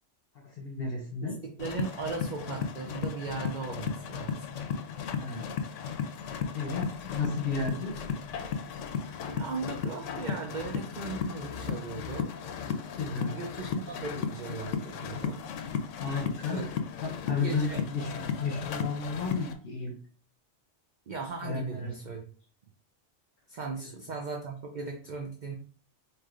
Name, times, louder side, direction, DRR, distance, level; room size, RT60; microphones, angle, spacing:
voice 1, 0.4-1.4 5.2-5.6 6.5-8.0 13.0-13.4 16.0-16.6 17.0-19.9 21.4-21.9 23.8-23.9, left 4 dB, 55° left, 1 dB, 0.9 m, -33 dB
voice 2, 1.4-4.5 9.3-12.4 13.3-15.4 16.5-16.7 17.4-17.8 21.1-22.2 23.5-25.6, right 4 dB, 50° right, 2 dB, 0.6 m, -38 dB
sound 1, 1.6-19.5, left 6 dB, 85° left, 0.9 m, -35 dB
4.6 x 3.1 x 2.5 m, 0.43 s
omnidirectional pair, 1.2 m